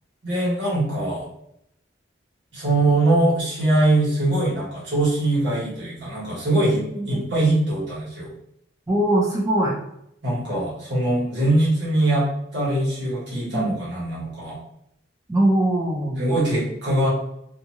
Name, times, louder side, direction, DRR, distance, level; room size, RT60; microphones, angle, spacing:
voice 1, 0.2-1.2 2.5-8.3 10.2-14.6 16.2-17.1, right 2 dB, 70° right, -7 dB, 1.4 m, -22 dB
voice 2, 8.9-9.7 13.5-13.7 15.3-16.2, right 1 dB, 15° right, -4 dB, 0.4 m, -21 dB
2.7 x 2.3 x 2.8 m, 0.76 s
head